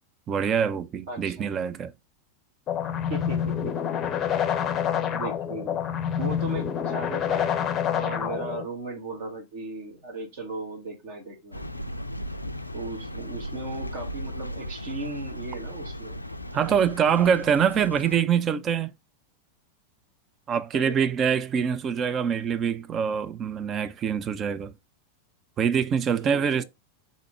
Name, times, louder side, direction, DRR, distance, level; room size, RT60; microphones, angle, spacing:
voice 1, 0.3-1.9 16.5-18.9 20.5-24.7 25.6-26.6, right 7 dB, 25° right, 0.4 m, -24 dB
voice 2, 1.1-1.5 3.1-3.7 5.1-5.8 6.2-11.6 12.7-16.2 20.7-21.1 26.2-26.6, right 2 dB, 50° right, 1.7 m, -36 dB
sound 1, 2.7-8.7, left 8 dB, 30° left, 0.6 m, -27 dB
sound 2, 11.5-18.2, equal, 85° left, 0.4 m, -37 dB
4.1 x 3.6 x 3.3 m
figure-of-eight pair, 90°, 0 cm